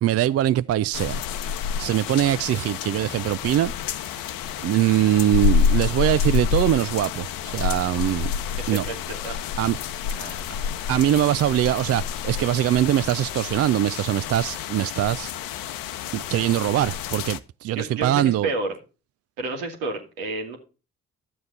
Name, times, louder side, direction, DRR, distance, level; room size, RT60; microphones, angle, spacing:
voice 1, 0.0-1.2 1.8-3.7 4.6-8.3 8.7-8.9 9.6-9.8 10.9-15.3 16.1-18.5, right 12 dB, 45° right, 0.4 m, -22 dB
sound 1, 0.9-17.4, left 7 dB, 70° left, 0.8 m, -28 dB
voice 2, 8.7-9.4 10.1-10.5 17.7-18.8 19.4-20.6, right 2 dB, 85° right, 2.1 m, -31 dB
11.5 x 7.8 x 4.0 m
hypercardioid pair, 50°, 35 cm